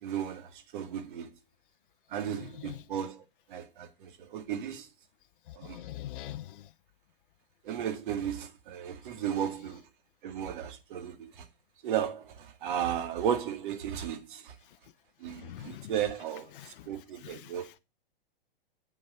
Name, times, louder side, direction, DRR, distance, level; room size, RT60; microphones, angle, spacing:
voice 1, 0.0-1.3 2.1-4.9 5.5-5.8 7.6-9.8 10.2-11.5 11.8-14.6 15.2-17.7, right 9 dB, 55° right, 2.1 m, -35 dB
voice 2, 5.5-6.6 15.4-15.9 16.6-16.7 17.2-17.5, left 13 dB, 60° left, 0.6 m, -43 dB
8.1 x 6.5 x 5.6 m
hypercardioid pair, 135°, 29 cm